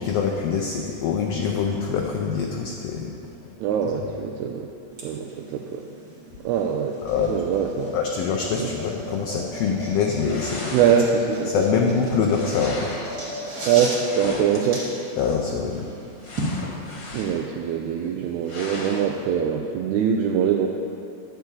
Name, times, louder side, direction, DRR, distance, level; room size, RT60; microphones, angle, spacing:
voice 1, 0.0-3.1 3.4-3.5 7.0-7.4 7.9-10.7 11.5-12.9 15.2-15.9, left 6 dB, 80° left, 1 dB, 1.4 m, -24 dB
voice 2, 3.6-4.7 5.0-5.9 6.4-7.0 7.3-7.9 8.6-8.7 10.7-11.6 13.7-14.9 17.1-20.7, right 7 dB, 80° right, 2 dB, 1.8 m, -23 dB
sound 1, 4.9-16.6, right 1 dB, 35° right, 1.8 m, -36 dB
sound 2, 10.2-11.4 12.3-13.2 14.0-14.9 16.2-17.5 17.9-18.0 18.4-19.1, left 2 dB, 50° left, 1.7 m, -36 dB
10.0 x 4.6 x 7.9 m, 2.6 s
omnidirectional pair, 3.5 m